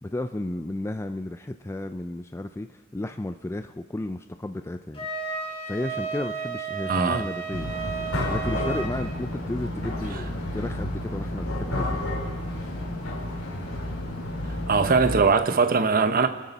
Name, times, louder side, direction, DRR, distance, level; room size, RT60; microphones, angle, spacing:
voice 1, 0.0-7.7 8.3-12.1, left 1 dB, 15° left, 0.4 m, -33 dB
Wind instrument woodwind instrument, 4.9-8.9, right 5 dB, 30° left, 3.4 m, -33 dB
voice 2, 6.9-7.2 10.1-10.2 14.7-16.3, right 4 dB, 45° right, 0.9 m, -21 dB
sound 1, 7.5-15.2, left 1 dB, 70° left, 4.0 m, -31 dB
27.0 x 13.0 x 4.2 m
head